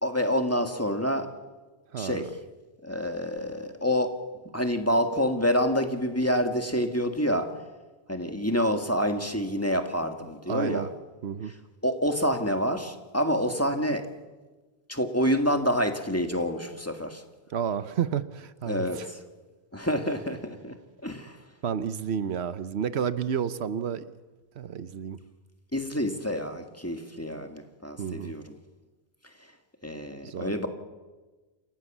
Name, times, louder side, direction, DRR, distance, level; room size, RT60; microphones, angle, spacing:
voice 1, 0.0-1.3 2.0-2.3 2.8-4.1 4.5-7.5 8.1-10.9 11.8-14.0 14.9-17.2 18.7-19.2 19.7-20.7 21.0-21.4 25.7-28.5 29.8-30.7, equal, 15° left, 6 dB, 1.9 m, -27 dB
voice 2, 1.9-2.3 10.5-10.9 11.2-11.5 17.5-19.1 21.6-24.1 24.6-25.2 28.0-28.3 30.2-30.5, right 8 dB, 80° right, 14 dB, 1.1 m, -31 dB
28.5 x 15.5 x 7.3 m, 1.2 s
omnidirectional pair, 1.1 m